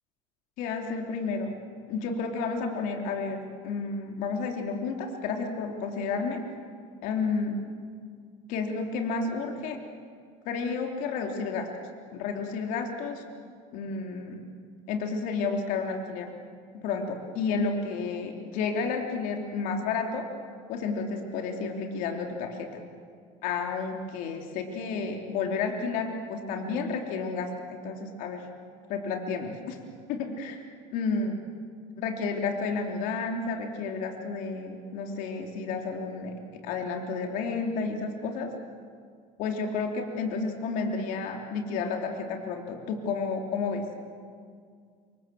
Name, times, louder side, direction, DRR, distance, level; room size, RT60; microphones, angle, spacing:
voice 1, 0.6-1.5 1.9-6.4 7.0-7.6 8.5-9.8 10.4-11.7 12.1-13.2 13.7-14.4 14.9-16.3 16.8-20.3 20.7-22.7 23.4-28.4 28.9-29.8 30.1-30.6 30.9-31.4 32.0-36.3 36.6-38.5 39.4-43.8, left 4 dB, 65° left, 2 dB, 3.3 m, -31 dB
28.0 x 25.0 x 7.8 m, 2.1 s
cardioid pair, 125°, 14 cm